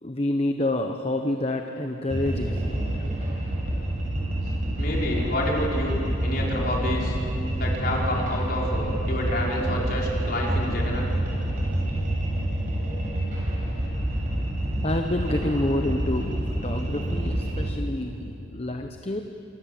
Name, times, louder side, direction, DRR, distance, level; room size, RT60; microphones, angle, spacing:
voice 1, 0.0-3.0 14.8-19.2, left 1 dB, 30° left, 5 dB, 0.9 m, -28 dB
sound 1, 2.1-17.7, right 1 dB, 40° right, 7.1 m, -27 dB
voice 2, 4.8-6.0 6.2-7.2 7.6-11.1, left 1 dB, 50° left, -3 dB, 4.9 m, -28 dB
26.0 x 22.0 x 7.7 m, 2.9 s
head